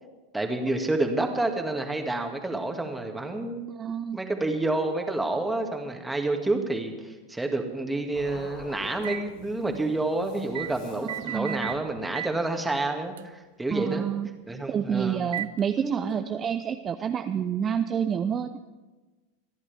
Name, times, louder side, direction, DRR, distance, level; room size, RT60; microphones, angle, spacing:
voice 1, 0.3-3.7 4.1-14.1 14.5-15.2 15.8-16.1 17.3-17.4, right 2 dB, 10° right, 4 dB, 2.0 m, -29 dB
voice 2, 3.8-4.2 11.0-11.7 13.7-14.3 14.7-18.6, right 8 dB, 30° right, 8 dB, 0.6 m, -28 dB
sound 1, 8.1-12.2, left 3 dB, 65° left, 3.2 m, -46 dB
sound 2, 9.0-9.2 10.5-10.7 11.1-11.8 12.1-12.4 13.2-13.3 15.3-15.6, right 11 dB, 70° right, 0.4 m, -34 dB
27.0 x 11.0 x 3.5 m, 1.2 s
hypercardioid pair, 90°, 0 cm